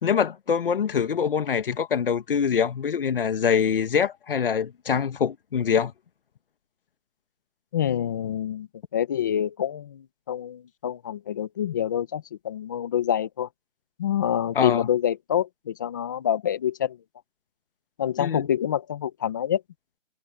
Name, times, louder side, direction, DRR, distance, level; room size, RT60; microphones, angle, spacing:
voice 1, 0.0-5.9 14.6-14.9 18.2-18.5, left 7 dB, 40° left, 2.1 m, -24 dB
voice 2, 7.7-8.7 8.9-13.5 14.0-17.0 18.0-19.6, left 10 dB, 15° left, 0.9 m, -27 dB
hypercardioid pair, 160°, 41 cm